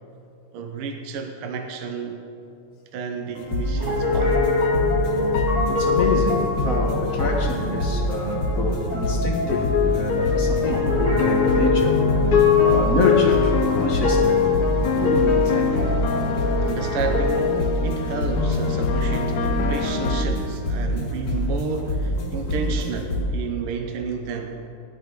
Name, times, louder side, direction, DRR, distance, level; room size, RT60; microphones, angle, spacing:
voice 1, 0.5-2.2 2.9-4.5 6.1-6.2 14.9-24.6, right 5 dB, 80° right, 5 dB, 1.7 m, -31 dB
sound 1, 3.3-23.2, left 1 dB, 80° left, 2.9 m, -26 dB
Piano, 3.8-17.5, equal, 15° right, 2.8 m, -27 dB
sound 2, 4.0-7.6 9.4-20.2, left 7 dB, 65° left, 0.9 m, -23 dB
voice 2, 5.7-12.0 12.3-14.4, left 3 dB, 45° left, 1 dB, 1.5 m, -26 dB
17.5 x 12.5 x 3.7 m, 2.7 s
omnidirectional pair, 2.4 m